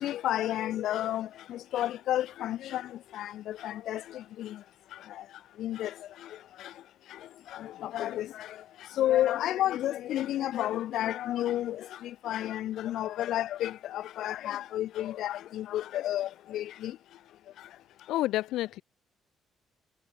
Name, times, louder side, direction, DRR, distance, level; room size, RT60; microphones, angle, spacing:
voice 1, 0.0-2.8 3.2-4.0 4.4-4.5 5.6-5.9 7.8-8.3 9.0-11.8 12.2-16.9, left 13 dB, 70° left, 2.3 m, -31 dB
voice 2, 18.1-18.8, left 16 dB, 85° left, 7.1 m, -29 dB
cardioid pair, 135°, 0 cm